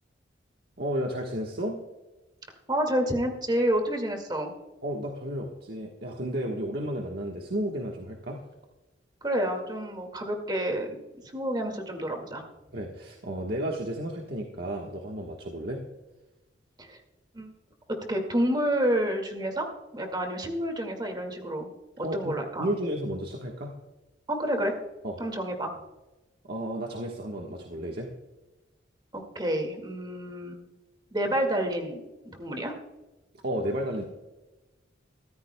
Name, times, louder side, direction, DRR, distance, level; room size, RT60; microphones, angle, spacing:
voice 1, 0.8-1.8 4.8-8.4 12.7-15.8 22.0-23.7 25.0-25.2 26.4-28.1 33.4-34.0, right 1 dB, 60° right, 0 dB, 1.3 m, -32 dB
voice 2, 2.7-4.5 9.2-11.0 11.3-12.4 16.8-17.0 17.3-17.5 17.9-21.7 22.0-22.7 24.3-24.7 25.2-25.7 29.1-30.6 31.1-32.8, right 1 dB, 25° right, 4 dB, 2.0 m, -29 dB
23.0 x 14.5 x 2.2 m, 1.1 s
head